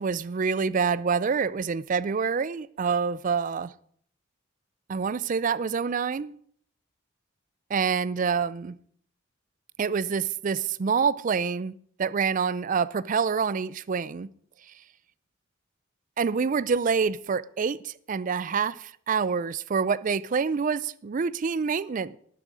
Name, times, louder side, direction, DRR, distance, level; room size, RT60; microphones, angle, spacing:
voice 1, 0.0-3.7 4.9-6.4 7.7-8.7 9.8-14.3 16.2-22.2, right 5 dB, 40° right, 0.4 m, -27 dB
12.0 x 10.0 x 4.9 m
head